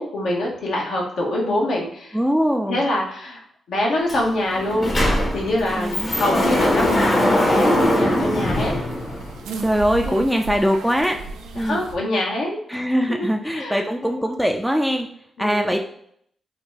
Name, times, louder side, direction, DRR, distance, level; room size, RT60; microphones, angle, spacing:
voice 1, 0.0-2.2 2.7-3.4 3.7-4.9 5.3-8.7 10.0-10.2 11.5-12.6 13.1-14.3 15.4-15.8, left 1 dB, 75° left, -2 dB, 0.8 m, -25 dB
voice 2, 2.1-2.8 5.7-6.2 9.6-11.2 11.5-11.8 12.7-15.1 15.4-15.8, equal, 5° right, 3 dB, 0.3 m, -21 dB
Sliding door, 4.1-4.2 4.5-9.5, left 1 dB, 45° left, 0.8 m, -21 dB
sound 1, 5.7-11.9, right 3 dB, 85° right, 0.3 m, -36 dB
2.6 x 2.2 x 3.0 m, 0.68 s
hypercardioid pair, 40°, 0 cm